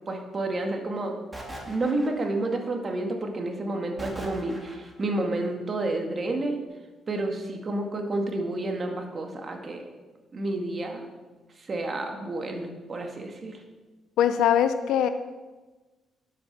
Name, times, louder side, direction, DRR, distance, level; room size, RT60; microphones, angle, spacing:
voice 1, 0.1-1.2 1.7-6.6 7.1-9.8 10.3-11.1 11.6-13.6, right 2 dB, 40° right, 3 dB, 2.0 m, -30 dB
sound 1, 1.3-2.6 4.0-5.1, right 1 dB, 10° right, 2.6 m, -40 dB
voice 2, 14.2-15.1, left 9 dB, 85° left, 10 dB, 0.6 m, -22 dB
10.0 x 8.2 x 6.0 m, 1.2 s
cardioid pair, 90°, 0 cm